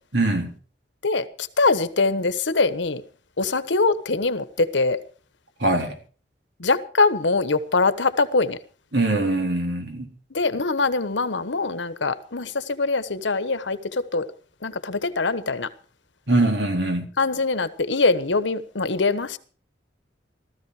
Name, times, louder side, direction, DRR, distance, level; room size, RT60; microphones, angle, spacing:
voice 1, 0.1-0.5 5.6-6.0 8.9-10.1 16.3-17.1, right 2 dB, 70° right, 3.9 m, -22 dB
voice 2, 1.0-3.0 3.4-5.0 6.6-8.6 10.3-14.2 14.6-15.7 17.2-19.4, left 3 dB, 90° left, 1.2 m, -23 dB
16.0 x 14.0 x 4.9 m
head